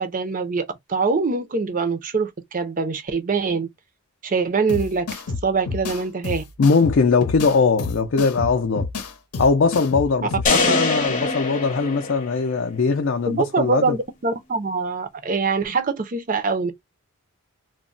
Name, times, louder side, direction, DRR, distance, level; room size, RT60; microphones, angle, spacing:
voice 1, 0.0-3.7 4.2-6.4 10.6-10.9 13.3-16.7, right 4 dB, 35° right, 0.5 m, -24 dB
sound 1, 4.7-10.7, left 4 dB, 90° left, 0.7 m, -30 dB
voice 2, 6.6-8.9 9.4-14.0, left 4 dB, 55° left, 0.4 m, -20 dB
sound 2, 10.5-12.7, left 3 dB, 35° left, 0.8 m, -23 dB
2.2 x 2.1 x 3.8 m
head